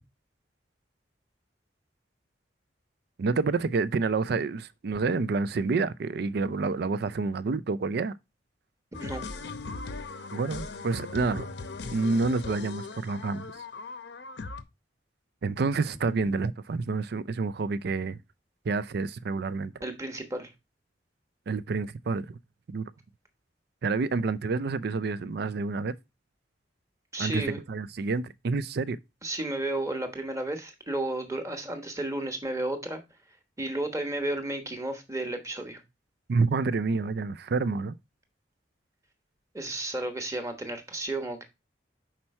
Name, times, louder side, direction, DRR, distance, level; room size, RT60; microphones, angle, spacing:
voice 1, 3.2-8.1 10.3-11.5 11.9-13.5 15.4-18.2 18.6-19.7 21.5-22.4 22.7-22.8 23.8-25.9 27.2-29.0 36.3-38.0, right 4 dB, 60° right, 0.4 m, -28 dB
sound 1, 8.9-14.6, left 3 dB, 65° left, 0.7 m, -39 dB
voice 2, 19.8-20.5 27.1-27.6 29.2-33.0 33.6-35.8 39.5-41.4, right 1 dB, 15° right, 1.1 m, -32 dB
5.9 x 4.4 x 4.2 m
head